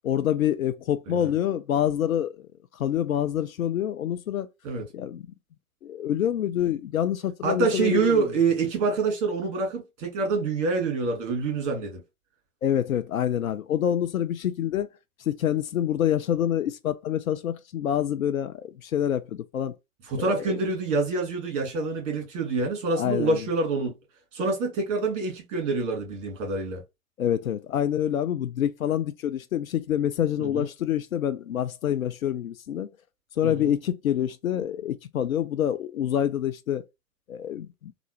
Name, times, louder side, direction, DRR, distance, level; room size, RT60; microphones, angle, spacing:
voice 1, 0.0-2.4 2.7-4.5 4.9-5.3 5.8-8.3 12.6-14.9 15.2-19.8 20.2-20.6 23.0-23.5 27.2-32.9 33.4-36.8 37.3-37.9, left 10 dB, 65° left, 0.5 m, -27 dB
voice 2, 7.4-12.0 20.1-23.9 24.3-26.8 30.4-30.7 33.4-33.7, right 4 dB, 30° right, 1.8 m, -26 dB
3.4 x 2.5 x 2.9 m
figure-of-eight pair, 110°, 45 cm